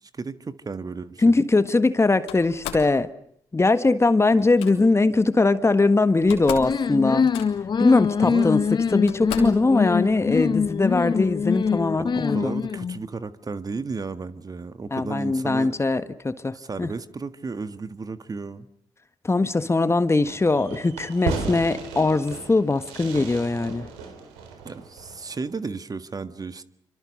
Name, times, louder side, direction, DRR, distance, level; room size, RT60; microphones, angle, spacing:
voice 1, 0.1-1.4 8.2-8.5 12.0-15.7 16.5-18.7 24.6-26.6, right 4 dB, 35° right, 12 dB, 1.7 m, -33 dB
voice 2, 1.2-3.1 3.5-7.3 7.8-8.6 8.9-12.5 14.9-16.9 19.2-23.9, left 3 dB, 25° left, 12 dB, 1.6 m, -21 dB
Slam, 2.3-2.9 4.3-4.7 5.8-5.9 6.1-6.8 7.0-7.7 8.5-8.6 9.1-9.6, left 9 dB, 85° left, 3.3 m, -36 dB
sound 1, 6.6-13.0, left 6 dB, 45° left, 0.9 m, -24 dB
Fireworks, 20.3-25.5, right 5 dB, 85° right, 3.9 m, -35 dB
26.5 x 25.5 x 6.6 m, 0.71 s
hypercardioid pair, 45°, 10 cm